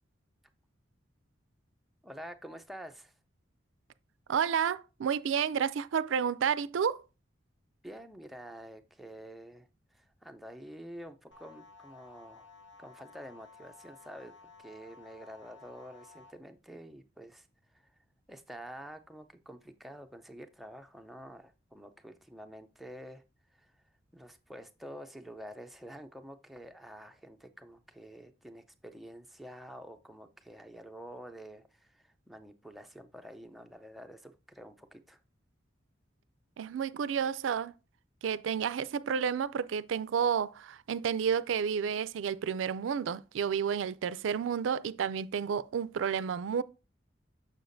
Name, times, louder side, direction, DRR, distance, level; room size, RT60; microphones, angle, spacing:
voice 1, 2.0-3.1 7.8-12.5 12.8-17.5 17.7-17.9 18.3-23.2 23.5-23.7 24.1-35.2, equal, ahead, 0.5 m, -48 dB
voice 2, 4.3-7.0 36.6-37.7 38.2-46.6, right 7 dB, 85° right, 0.4 m, -31 dB
sound 1, 11.3-16.3, left 4 dB, 80° left, 0.9 m, -55 dB
6.8 x 6.4 x 2.6 m
head